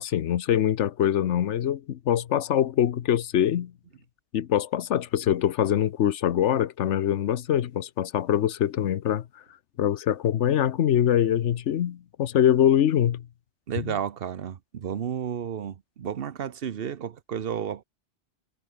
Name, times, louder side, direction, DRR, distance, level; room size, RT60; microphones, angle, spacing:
voice 1, 0.0-3.7 4.3-9.2 9.8-13.2 13.8-13.9, left 10 dB, 80° left, 1.1 m, -24 dB
voice 2, 13.7-17.8, right 8 dB, 55° right, 1.0 m, -32 dB
omnidirectional pair, 1.2 m